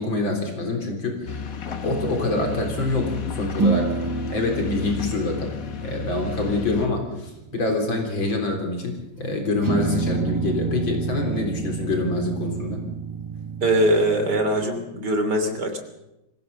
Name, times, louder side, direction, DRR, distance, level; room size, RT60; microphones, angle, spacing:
voice 1, 0.0-1.4 1.6-5.5 5.8-12.8, left 2 dB, 85° left, 3 dB, 4.4 m, -26 dB
sound 1, 1.3-6.9, left 5 dB, 50° left, 1.6 m, -32 dB
sound 2, 1.8-3.3 3.6-9.3 9.6-14.7, right 4 dB, 15° right, 0.8 m, -30 dB
voice 2, 13.6-15.8, right 1 dB, 60° right, 5 dB, 3.7 m, -22 dB
24.0 x 16.0 x 7.0 m, 0.94 s
omnidirectional pair, 2.1 m